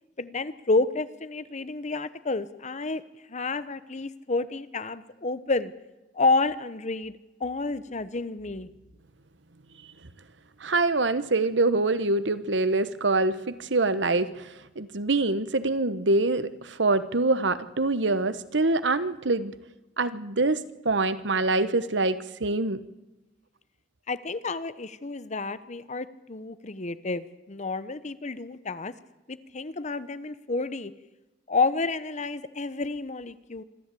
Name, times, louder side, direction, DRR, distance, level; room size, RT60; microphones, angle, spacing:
voice 1, 0.2-3.0 3.3-5.7 6.1-8.7 24.1-28.9 29.3-30.9 31.5-33.6, left 3 dB, 40° left, 14 dB, 1.0 m, -30 dB
voice 2, 10.6-19.5 20.0-20.6 20.8-22.8, right 3 dB, 70° right, 13 dB, 1.2 m, -25 dB
25.5 x 13.5 x 8.5 m, 1.0 s
head